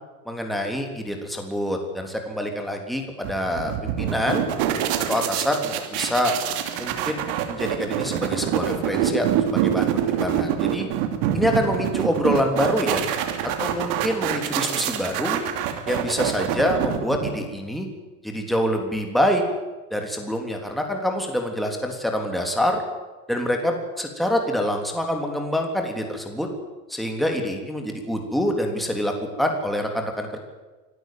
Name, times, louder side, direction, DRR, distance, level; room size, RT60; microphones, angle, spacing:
voice 1, 0.3-4.4 5.1-6.3 6.8-10.9 11.3-13.1 13.6-15.4 15.9-17.9 18.2-19.4 19.9-22.8 23.3-26.5 26.9-30.4, equal, ahead, 3 dB, 3.4 m, -26 dB
sound 1, 3.2-17.6, right 10 dB, 60° right, 3.0 m, -26 dB
24.5 x 13.0 x 9.4 m, 1.2 s
hypercardioid pair, 110°, 47 cm